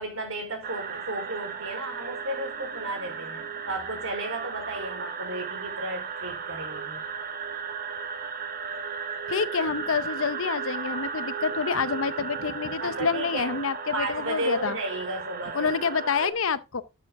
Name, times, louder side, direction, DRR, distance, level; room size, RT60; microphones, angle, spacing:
voice 1, 0.0-7.0 12.8-13.6 13.9-15.7, right 1 dB, 70° right, 4.2 m, -34 dB
sound 1, 0.6-16.3, right 6 dB, 40° right, 1.1 m, -35 dB
voice 2, 9.3-14.8 15.5-16.8, left 5 dB, 70° left, 0.7 m, -27 dB
12.5 x 7.1 x 3.6 m
head